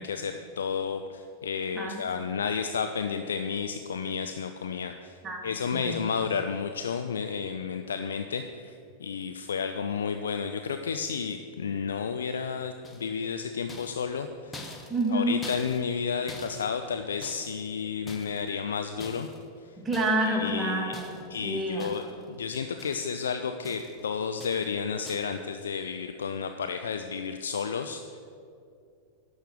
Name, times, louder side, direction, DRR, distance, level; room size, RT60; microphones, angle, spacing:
voice 1, 0.0-5.2 5.4-14.6 15.1-19.3 20.2-20.9 21.3-28.2, left 6 dB, 65° left, 7 dB, 0.4 m, -32 dB
voice 2, 5.2-6.0 14.9-15.4 19.8-21.9, right 1 dB, 15° right, 0 dB, 2.1 m, -29 dB
sound 1, 12.8-13.3 13.7-16.0 16.3-17.7 18.1-18.6 19.0-19.5 19.9-20.4 20.9-21.4 21.8-22.3 22.5-23.2 23.6-24.1 24.4-24.8 25.1-25.4, left 2 dB, 15° left, 1.2 m, -45 dB
11.0 x 6.4 x 7.7 m, 2.5 s
figure-of-eight pair, 90°, 0 cm